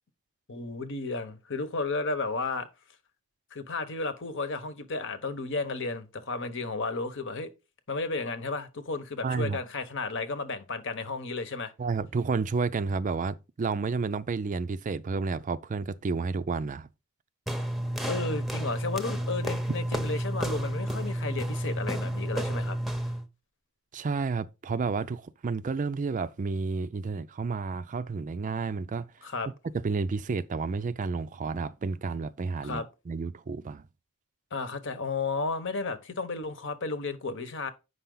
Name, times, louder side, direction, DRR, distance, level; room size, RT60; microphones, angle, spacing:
voice 1, 0.5-2.7 3.5-7.5 7.9-11.7 18.1-22.8 29.2-29.5 32.6-32.9 34.5-37.7, left 3 dB, 60° left, 1.1 m, -33 dB
voice 2, 9.2-9.6 11.8-16.9 23.9-29.1 29.7-33.8, right 4 dB, 40° right, 0.4 m, -31 dB
sound 1, 17.5-23.3, right 1 dB, ahead, 0.8 m, -31 dB
7.9 x 5.7 x 3.8 m
head